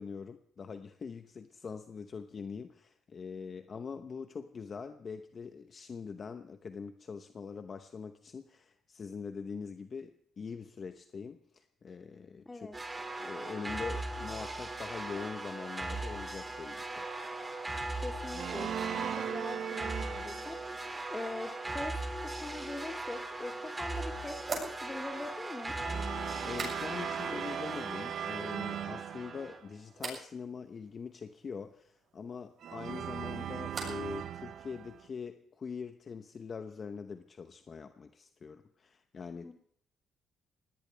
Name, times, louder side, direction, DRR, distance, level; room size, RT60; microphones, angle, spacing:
voice 1, 0.0-12.7 13.2-17.1 26.1-39.5, left 5 dB, 45° left, 8 dB, 0.9 m, -43 dB
voice 2, 12.5-12.8 18.0-25.8 39.4-39.5, left 2 dB, 20° left, 5 dB, 2.1 m, -43 dB
sound 1, 12.7-29.6, right 2 dB, 20° right, 2.3 m, -39 dB
sound 2, 18.3-20.8 25.7-29.8 32.6-35.1, right 9 dB, 70° right, 0.7 m, -39 dB
sound 3, 24.4-27.3 27.5-28.1 28.5-29.1 29.9-30.3 32.7-34.2 34.4-35.0, right 4 dB, 45° right, 6.8 m, -44 dB
19.0 x 17.5 x 3.4 m, 0.62 s
cardioid pair, 90°, 0 cm